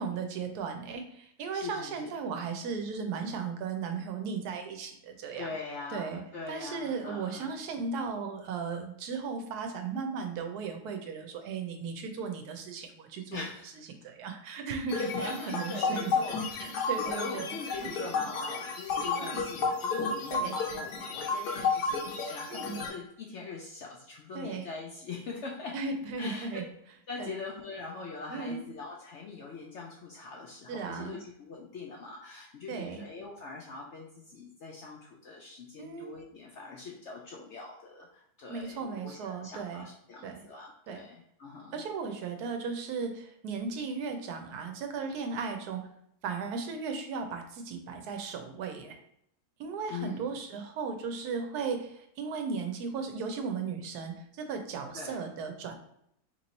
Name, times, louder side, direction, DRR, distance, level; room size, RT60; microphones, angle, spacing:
voice 1, 0.0-5.5 5.9-6.2 6.5-13.5 14.0-16.1 16.6-17.6 17.8-18.0 19.2-19.4 20.3-20.6 22.5-22.8 24.3-24.7 25.7-26.6 27.2-27.3 28.3-28.6 30.7-31.2 32.7-33.0 35.8-36.1 38.5-39.9 40.2-40.4 40.9-41.0 41.7-45.8 46.2-49.0 49.6-55.7, right 5 dB, 80° right, 5 dB, 1.2 m, -36 dB
voice 2, 1.5-2.1 5.4-7.5 13.3-13.7 14.9-25.8 26.2-26.5 27.1-41.8 49.9-50.3 54.9-55.2, left 4 dB, 70° left, -1 dB, 0.7 m, -42 dB
sound 1, 14.9-22.9, left 4 dB, 85° left, 1.3 m, -32 dB
3.1 x 3.0 x 4.0 m, 0.73 s
omnidirectional pair, 1.7 m